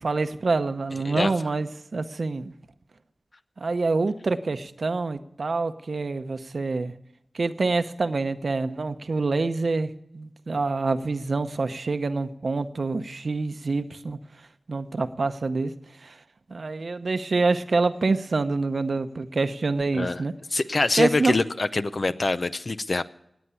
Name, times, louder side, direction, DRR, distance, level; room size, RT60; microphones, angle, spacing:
voice 1, 0.0-2.5 3.6-6.9 7.3-14.2 14.7-15.7 16.0-16.1 16.5-20.3 21.0-21.4, right 3 dB, 75° right, 10 dB, 0.8 m, -26 dB
voice 2, 19.9-20.2 20.5-23.0, left 3 dB, 60° left, 12 dB, 0.7 m, -25 dB
19.0 x 8.1 x 7.0 m, 0.78 s
cardioid pair, 40°, 0 cm